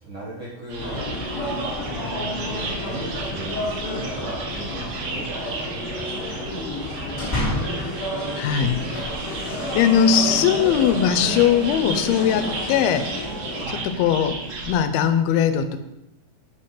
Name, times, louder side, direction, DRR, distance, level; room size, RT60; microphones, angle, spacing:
voice 1, 0.0-1.0 2.4-7.2 13.6-13.9, right 2 dB, 55° right, -7 dB, 1.4 m, -38 dB
sound 1, 0.7-14.8, right 2 dB, 70° right, 3.1 m, -33 dB
sound 2, 0.8-13.7, left 1 dB, 50° left, 1.7 m, -31 dB
sound 3, 6.9-7.9 8.4-11.2, left 1 dB, 15° left, 2.5 m, -32 dB
voice 2, 8.4-8.8 9.7-13.1 14.0-14.4 14.7-15.8, left 8 dB, 85° left, 9 dB, 2.5 m, -19 dB
7.7 x 5.0 x 5.7 m, 0.91 s
omnidirectional pair, 4.4 m